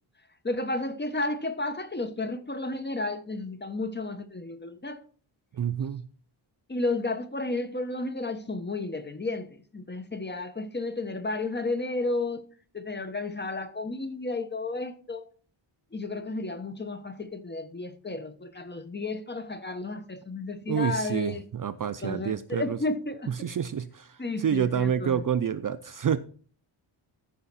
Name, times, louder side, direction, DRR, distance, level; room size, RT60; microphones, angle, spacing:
voice 1, 0.4-5.0 6.7-12.4 12.7-15.3 15.9-21.4 22.0-23.5 24.2-25.2, left 2 dB, 20° left, 1.0 m, -32 dB
voice 2, 5.5-6.1 20.7-22.8 23.3-26.2, right 8 dB, 45° right, 0.5 m, -28 dB
14.0 x 5.6 x 4.1 m
wide cardioid pair, 115°, 49 cm